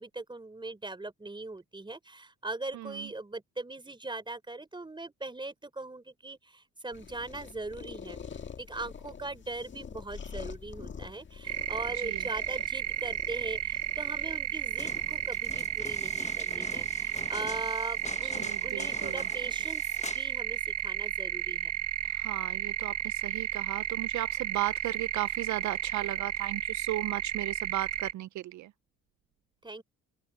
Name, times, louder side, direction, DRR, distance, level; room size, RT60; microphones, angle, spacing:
voice 1, 0.0-8.2 8.6-21.7 29.6-29.8, right 2 dB, 15° right, 4.1 m, -40 dB
voice 2, 2.7-3.1 11.9-12.2 18.2-19.2 22.1-28.7, right 15 dB, 70° right, 0.5 m, -36 dB
sound 1, 6.9-15.6, left 6 dB, 40° left, 1.8 m, -46 dB
sound 2, 11.4-28.1, right 10 dB, 55° right, 2.1 m, -33 dB
sound 3, 14.7-20.3 20.6-20.7, left 4 dB, 25° left, 1.1 m, -45 dB
open air
cardioid pair, 90°, 30 cm